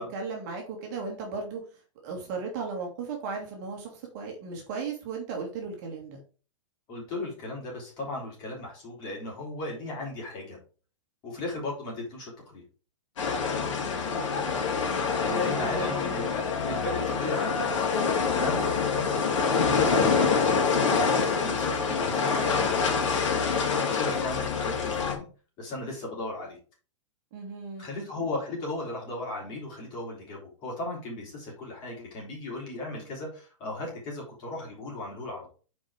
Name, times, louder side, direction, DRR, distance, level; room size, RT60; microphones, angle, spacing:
voice 1, 0.0-1.6 2.0-6.2 13.7-14.3 15.2-16.2 27.3-27.9, right 4 dB, 35° right, 1 dB, 1.9 m, -36 dB
voice 2, 6.9-10.6 11.2-12.6 15.3-17.9 18.3-25.2 25.6-26.6 27.8-35.5, left 2 dB, 25° left, -3 dB, 3.4 m, -36 dB
sound 1, 13.2-25.2, left 5 dB, 70° left, 2.5 m, -26 dB
6.2 x 4.8 x 4.8 m, 0.38 s
hypercardioid pair, 165°, 16 cm